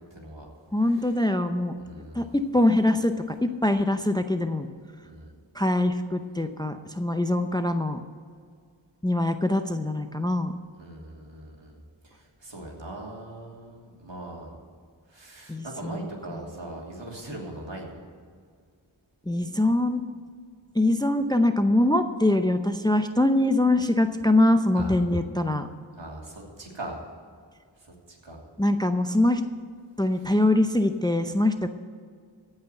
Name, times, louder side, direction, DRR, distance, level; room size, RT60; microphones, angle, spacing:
voice 1, 0.1-0.5 1.8-2.4 5.0-5.3 10.8-14.6 15.1-17.9 24.7-25.0 26.0-27.0 27.8-28.4, right 1 dB, 65° right, -1 dB, 3.0 m, -40 dB
voice 2, 0.7-4.7 5.5-8.0 9.0-10.5 15.5-16.1 19.3-20.0 20.7-25.7 28.6-29.4 30.0-31.7, left 1 dB, 10° left, 8 dB, 0.6 m, -23 dB
16.0 x 5.7 x 7.9 m, 2.1 s
wide cardioid pair, 50°, 48 cm